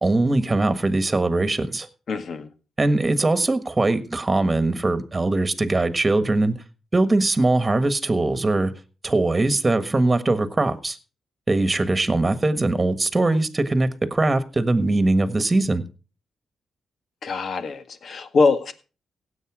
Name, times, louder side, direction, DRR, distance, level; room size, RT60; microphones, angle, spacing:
voice 1, 0.0-1.9 2.8-6.5 6.9-8.7 9.0-11.0 11.5-15.8, right 2 dB, 25° right, 1.5 m, -21 dB
voice 2, 2.1-2.5 17.2-18.7, left 4 dB, 60° left, 1.8 m, -23 dB
16.5 x 8.3 x 4.9 m
cardioid pair, 90°, 0 cm